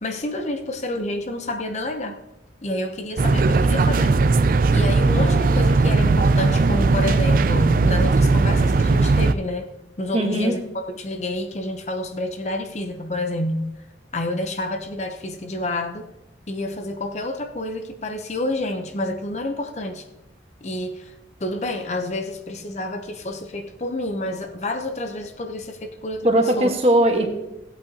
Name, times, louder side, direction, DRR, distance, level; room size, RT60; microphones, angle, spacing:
voice 1, 0.0-2.2 2.6-4.2 4.7-9.7 10.0-13.7 14.1-16.1 16.5-20.1 20.6-21.1 21.4-26.7, left 1 dB, 40° left, 6 dB, 0.7 m, -29 dB
sound 1, 3.2-9.3, right 3 dB, 50° right, 0.4 m, -18 dB
voice 2, 10.1-10.5 26.2-27.3, right 1 dB, 35° right, 3 dB, 1.3 m, -18 dB
16.5 x 8.2 x 2.8 m, 0.92 s
head